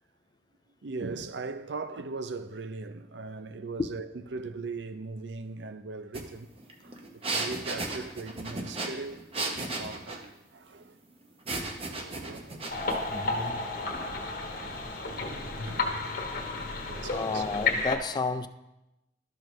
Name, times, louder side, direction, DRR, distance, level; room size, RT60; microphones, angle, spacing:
voice 1, 0.8-6.5 6.8-11.0 11.9-12.7 13.8-14.2 14.5-14.6 15.3-16.1 16.8-17.4, right 3 dB, 70° right, 0.6 m, -40 dB
sound 1, 6.1-6.2 6.5-10.3 11.5-13.0, right 2 dB, 35° right, 1.0 m, -34 dB
sound 2, 12.7-18.0, left 3 dB, 55° left, 1.3 m, -32 dB
voice 2, 13.1-14.2 17.1-18.5, left 3 dB, 25° left, 0.3 m, -32 dB
12.0 x 6.6 x 3.2 m
head